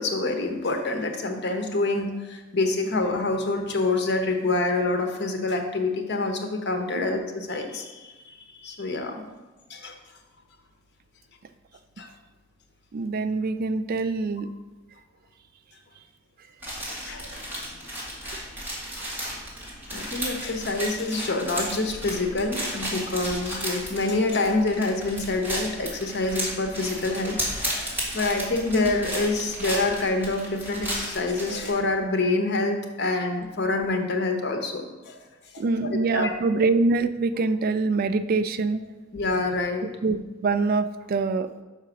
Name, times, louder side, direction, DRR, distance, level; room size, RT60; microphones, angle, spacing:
voice 1, 0.0-9.2 9.7-10.0 12.0-12.1 17.1-17.7 19.9-27.4 27.6-35.2 35.5-36.3 39.1-39.9, left 2 dB, 60° left, 4 dB, 0.9 m, -27 dB
voice 2, 12.9-14.5 35.6-38.8 40.0-41.5, right 3 dB, 50° right, 12 dB, 0.3 m, -24 dB
sound 1, 16.6-31.7, equal, 10° right, 1.9 m, -34 dB
5.9 x 4.8 x 5.9 m, 1.2 s
head